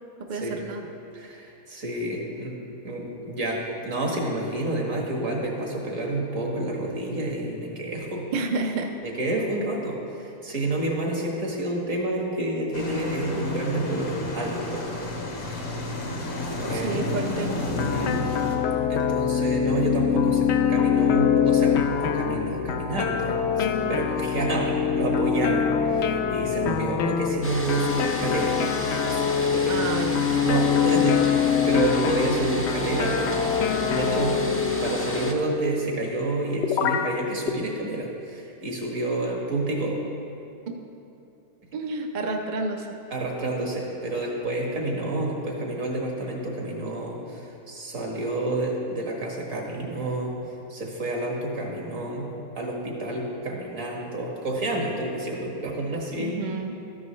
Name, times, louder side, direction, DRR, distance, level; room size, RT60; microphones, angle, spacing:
voice 1, 0.2-0.8 8.3-8.9 16.7-17.5 29.7-30.2 40.7-40.8 41.7-43.0 56.2-56.8, right 3 dB, 45° right, 2 dB, 0.6 m, -30 dB
voice 2, 1.1-2.5 2.8-8.3 9.0-14.8 16.7-17.0 17.9-18.3 18.9-28.6 29.0-29.9 30.4-33.6 33.8-34.4 34.8-40.0 43.1-56.4, right 2 dB, 65° right, -1 dB, 1.9 m, -29 dB
sound 1, 12.7-18.6, left 1 dB, 90° left, 1.8 m, -31 dB
sound 2, 17.7-35.5 36.6-37.1 37.5-37.6, left 7 dB, 65° left, 0.7 m, -24 dB
sound 3, 27.4-35.3, left 1 dB, 15° left, 0.4 m, -32 dB
13.0 x 9.8 x 3.1 m, 2.8 s
omnidirectional pair, 1.5 m